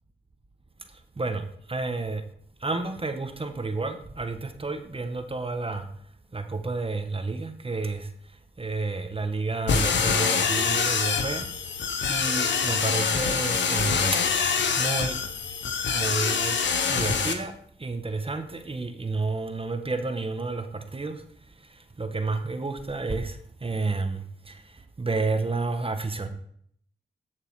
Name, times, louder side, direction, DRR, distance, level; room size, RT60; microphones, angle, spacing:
voice 1, 1.2-2.2 2.6-5.9 6.3-8.1 8.6-11.4 12.1-15.2 15.9-16.6 16.9-17.5 17.8-21.2 21.7-24.6 25.0-26.3, right 3 dB, 30° right, 7 dB, 1.4 m, -30 dB
sound 1, 9.7-17.3, left 6 dB, 85° left, 1.1 m, -25 dB
10.5 x 6.8 x 4.9 m, 0.64 s
cardioid pair, 65°, 18 cm